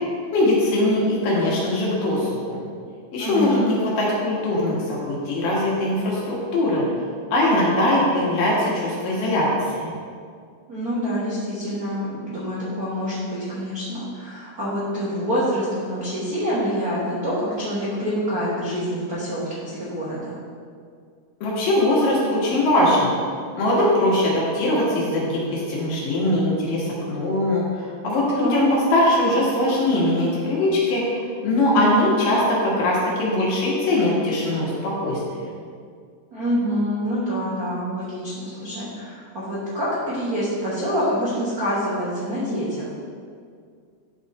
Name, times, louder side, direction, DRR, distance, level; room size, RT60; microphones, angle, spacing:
voice 1, 0.3-2.6 3.1-6.9 7.3-9.5 9.7-9.9 21.4-23.1 23.6-35.2, left 1 dB, 75° left, -5 dB, 3.3 m, -21 dB
voice 2, 3.2-3.7 10.7-20.4 28.3-28.6 31.6-31.9 36.3-42.9, equal, 65° right, -9 dB, 0.9 m, -26 dB
10.5 x 3.9 x 4.3 m, 2.1 s
omnidirectional pair, 3.9 m